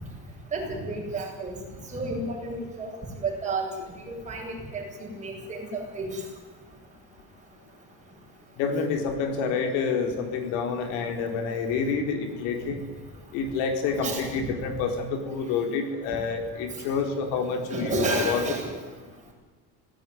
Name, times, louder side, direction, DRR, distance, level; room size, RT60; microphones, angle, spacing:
voice 1, 0.5-1.6 1.9-2.9 3.2-3.6 4.1-6.2 13.9-14.3 17.7-18.7, right 2 dB, 20° right, -1 dB, 7.8 m, -31 dB
voice 2, 8.6-12.8 13.3-18.4, left 5 dB, 90° left, 5 dB, 4.7 m, -28 dB
26.0 x 18.0 x 9.7 m, 1.4 s
cardioid pair, 150°, 33 cm